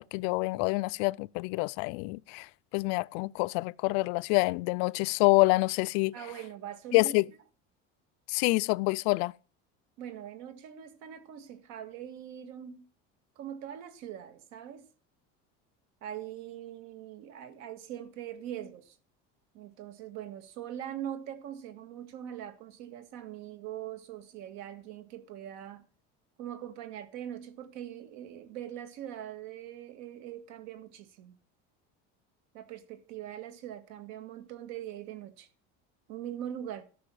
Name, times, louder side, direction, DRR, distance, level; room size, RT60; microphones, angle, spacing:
voice 1, 0.1-2.5 2.7-6.2 6.9-7.3 8.3-9.3, left 25 dB, 80° left, 0.5 m, -27 dB
voice 2, 6.1-7.1 10.0-12.9 13.4-14.9 16.0-19.0 19.5-25.9 26.4-31.3 32.5-35.5 36.1-36.8, right 10 dB, 65° right, 1.9 m, -42 dB
13.5 x 5.6 x 7.6 m
cardioid pair, 155°, 29 cm